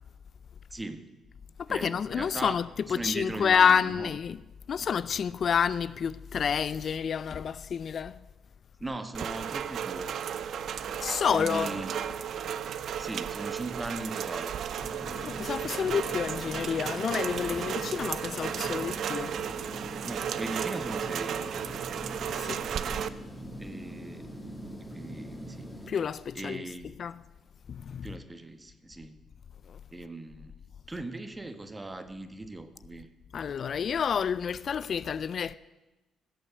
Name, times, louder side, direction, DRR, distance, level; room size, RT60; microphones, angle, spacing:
voice 1, 0.7-1.1 1.7-2.6 2.9-4.1 8.8-10.2 11.3-12.0 13.0-14.5 20.0-21.4 23.6-24.3 24.9-25.7 26.3-26.9 28.0-29.1 29.9-30.5 30.9-33.1, right 2 dB, 20° right, 1.3 m, -38 dB
voice 2, 1.6-2.6 2.9-4.4 4.7-8.2 11.0-11.7 15.2-19.4 22.3-22.6 25.9-26.6 27.0-27.1 27.7-28.1 29.7-29.8 33.3-35.5, left 7 dB, 55° left, 0.4 m, -29 dB
Rain, 9.1-23.1, right 8 dB, 65° right, 0.6 m, -34 dB
sound 1, 14.8-25.9, equal, 10° left, 2.4 m, -43 dB
16.0 x 7.7 x 7.8 m
cardioid pair, 90°, 0 cm